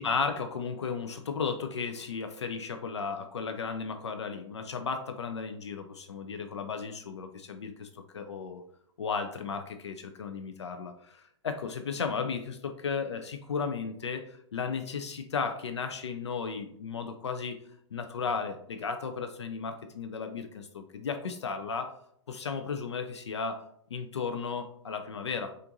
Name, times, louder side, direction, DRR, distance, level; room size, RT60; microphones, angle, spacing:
voice 1, 0.0-8.6 9.0-17.6 17.9-21.9 22.3-23.6 23.9-25.5, left 5 dB, 70° left, 7 dB, 0.4 m, -34 dB
4.3 x 2.5 x 2.6 m, 0.69 s
figure-of-eight pair, 110°, 15 cm